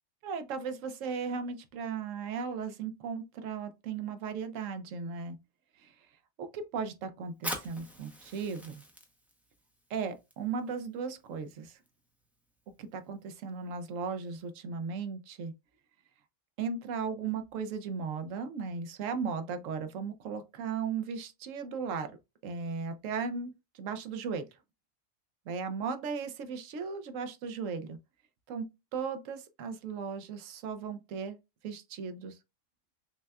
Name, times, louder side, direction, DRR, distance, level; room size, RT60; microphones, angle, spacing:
voice 1, 0.2-5.4 5.8-5.9 6.4-8.8 9.9-11.8 12.8-15.5 16.6-22.1 22.4-24.5 25.5-28.0 28.5-28.7 28.9-31.4 31.6-32.4, right 5 dB, 80° right, 1.0 m, -36 dB
Fire, 7.3-14.5, equal, ahead, 0.4 m, -46 dB
6.0 x 2.2 x 2.3 m
omnidirectional pair, 1.3 m